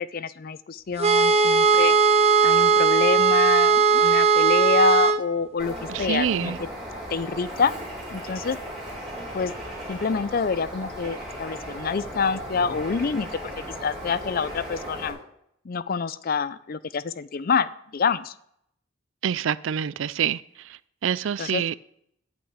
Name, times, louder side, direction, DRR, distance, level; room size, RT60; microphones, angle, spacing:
voice 1, 0.0-2.0 2.4-6.5 7.1-7.7 8.1-8.6 9.3-9.5 9.9-13.3 13.8-15.2 15.7-18.3 21.4-21.8, left 5 dB, 45° left, 0.4 m, -27 dB
sound 1, 1.0-5.2, right 5 dB, 30° right, 0.6 m, -18 dB
Bird, 5.6-15.1, equal, ahead, 3.2 m, -36 dB
voice 2, 5.9-6.6 19.2-20.4 21.0-21.7, right 8 dB, 70° right, 0.4 m, -26 dB
8.8 x 6.1 x 8.0 m
head